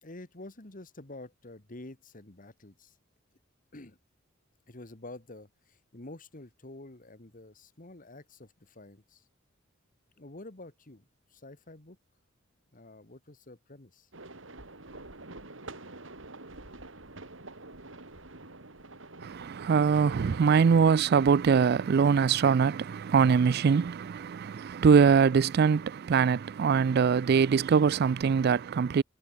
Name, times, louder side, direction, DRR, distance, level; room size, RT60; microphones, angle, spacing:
voice 1, 0.0-3.0 3.7-4.0 4.7-9.2 10.2-12.0 12.7-14.1, left 2 dB, 45° left, 1.9 m, -48 dB
sound 1, 14.1-21.7, right 2 dB, 70° right, 3.4 m, -47 dB
voice 2, 19.2-29.0, right 6 dB, 55° right, 0.4 m, -23 dB
head